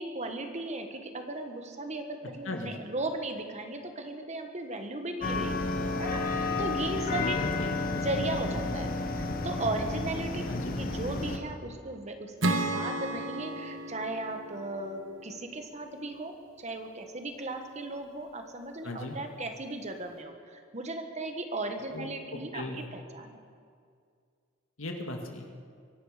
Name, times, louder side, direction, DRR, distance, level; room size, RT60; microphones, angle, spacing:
voice 1, 0.0-5.7 6.0-7.4 8.0-10.4 10.8-23.4, right 2 dB, 35° right, 5 dB, 1.4 m, -36 dB
voice 2, 2.4-2.7 7.1-7.8 10.5-10.8 18.8-19.2 21.9-22.1 22.3-22.9 24.8-25.5, left 2 dB, 85° left, 2 dB, 2.1 m, -37 dB
sound 1, 5.2-11.4, left 3 dB, 45° left, 1.4 m, -31 dB
Acoustic guitar / Strum, 12.4-15.9, right 1 dB, 70° right, 1.1 m, -33 dB
24.0 x 11.5 x 5.1 m, 2.2 s
head